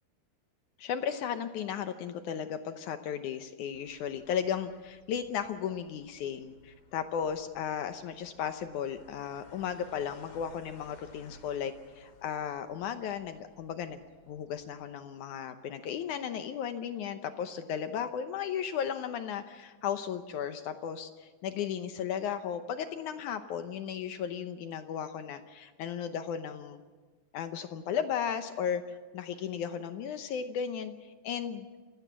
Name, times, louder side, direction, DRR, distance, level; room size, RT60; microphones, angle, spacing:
voice 1, 0.8-26.8 27.3-31.7, left 8 dB, 75° left, 9 dB, 1.9 m, -35 dB
sound 1, 3.7-14.8, left 3 dB, 40° left, 2.7 m, -58 dB
27.5 x 16.5 x 7.4 m, 1.3 s
omnidirectional pair, 4.5 m